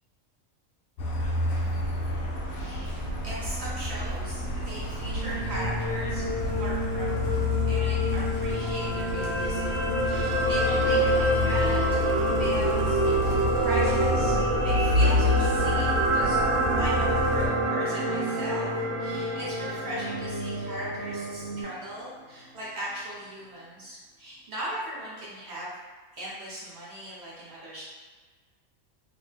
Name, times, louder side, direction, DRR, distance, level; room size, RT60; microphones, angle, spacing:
Truck, 1.0-17.5, left 3 dB, 85° left, 1.1 m, -29 dB
voice 1, 2.5-2.9 3.2-12.0 12.4-14.4 14.6-16.4 16.7-25.7 26.1-27.8, right 1 dB, 55° right, -7 dB, 1.0 m, -38 dB
sound 1, 4.8-21.6, equal, 15° right, 0.6 m, -33 dB
sound 2, 8.9-21.2 21.5-21.7, right 2 dB, 80° right, 1.0 m, -27 dB
2.9 x 2.1 x 3.2 m, 1.4 s
omnidirectional pair, 1.4 m